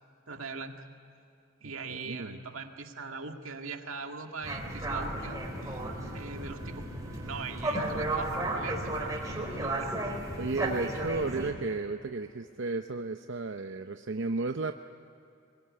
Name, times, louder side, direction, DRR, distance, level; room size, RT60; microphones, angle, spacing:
voice 1, 0.3-0.8 1.6-5.8 6.1-6.9 7.2-10.0 10.9-11.0, right 4 dB, 85° right, 4 dB, 2.0 m, -41 dB
voice 2, 1.6-2.4 10.4-14.7, right 3 dB, 60° right, 7 dB, 0.7 m, -34 dB
sound 1, 4.4-11.5, right 1 dB, 15° right, 4.5 m, -34 dB
22.5 x 21.5 x 9.7 m, 2.7 s
head